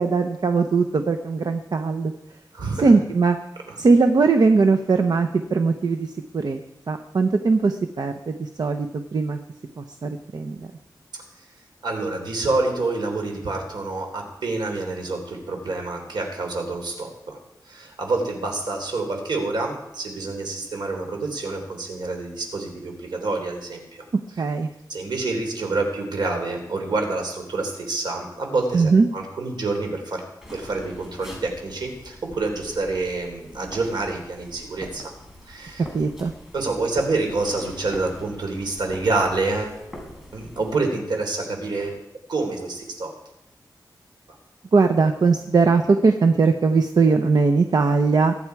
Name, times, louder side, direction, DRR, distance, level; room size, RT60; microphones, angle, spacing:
voice 1, 0.0-2.1 2.8-3.4 3.8-6.6 6.9-9.4 9.8-10.7 24.4-24.7 28.7-29.1 35.9-36.3 44.7-48.3, right 4 dB, 60° right, 6 dB, 0.9 m, -20 dB
voice 2, 2.5-2.9 11.8-17.4 17.7-24.0 24.9-30.2 30.5-35.1 35.5-35.9 36.5-39.8 40.3-42.0 42.3-43.1, right 3 dB, 80° right, 3 dB, 3.6 m, -27 dB
sound 1, 30.4-40.8, equal, 5° right, 5.0 m, -43 dB
22.5 x 9.5 x 4.8 m, 0.85 s
wide cardioid pair, 95°, 8 cm